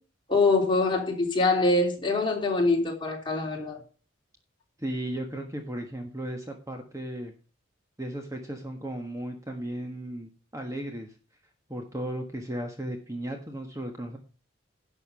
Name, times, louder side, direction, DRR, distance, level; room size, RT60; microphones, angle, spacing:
voice 1, 0.3-3.8, left 3 dB, 25° left, 3.1 m, -24 dB
voice 2, 4.8-7.3 8.0-11.1 11.7-14.2, right 1 dB, 15° right, 1.4 m, -35 dB
11.5 x 6.7 x 5.6 m
head